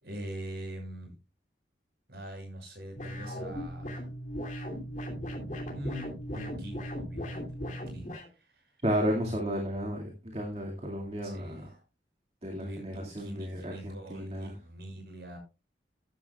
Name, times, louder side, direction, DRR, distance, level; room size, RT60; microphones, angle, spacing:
voice 1, 0.0-1.1 2.1-4.0 5.7-8.7 11.2-11.8 12.5-15.4, right 1 dB, 60° right, 2 dB, 6.4 m, -43 dB
sound 1, 3.0-8.3, equal, 45° left, 2.7 m, -37 dB
voice 2, 8.8-11.7 12.4-14.5, equal, 35° right, 1 dB, 2.1 m, -33 dB
14.0 x 11.0 x 2.3 m, 0.29 s
head